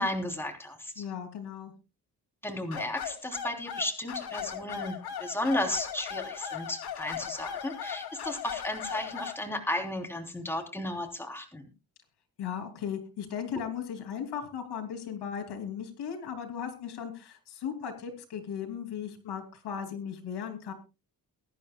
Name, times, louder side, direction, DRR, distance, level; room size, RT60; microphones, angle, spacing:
voice 1, 0.0-1.0 2.4-11.6, left 1 dB, 5° left, 2 dB, 3.2 m, -34 dB
voice 2, 1.0-1.7 12.4-20.7, left 8 dB, 90° left, 5 dB, 3.0 m, -37 dB
sound 1, 2.7-9.4, left 8 dB, 70° left, 2.4 m, -38 dB
22.0 x 10.5 x 2.2 m, 0.28 s
cardioid pair, 100°, 39 cm